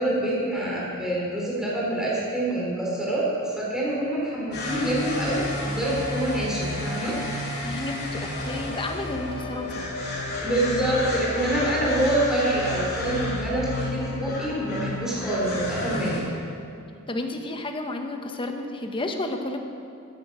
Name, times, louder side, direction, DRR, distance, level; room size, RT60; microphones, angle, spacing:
voice 1, 0.0-7.1 10.4-16.2, right 1 dB, 5° right, -6 dB, 4.1 m, -26 dB
sound 1, 4.5-16.2, left 2 dB, 50° left, 4.1 m, -31 dB
voice 2, 7.6-9.9 17.1-19.6, left 2 dB, 25° left, 4 dB, 1.1 m, -31 dB
14.0 x 11.0 x 6.3 m, 2.5 s
head